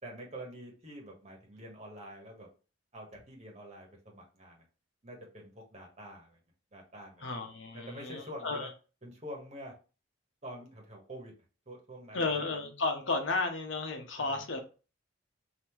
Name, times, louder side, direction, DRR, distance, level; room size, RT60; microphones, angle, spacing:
voice 1, 0.0-2.5 2.9-4.6 5.0-6.4 6.7-7.3 7.7-8.7 9.0-9.7 10.4-11.3 11.7-12.5 14.2-14.4, equal, 35° right, 1.4 m, -46 dB
voice 2, 7.2-8.7 12.1-14.6, left 3 dB, 70° left, 0.9 m, -33 dB
3.7 x 2.9 x 4.5 m
head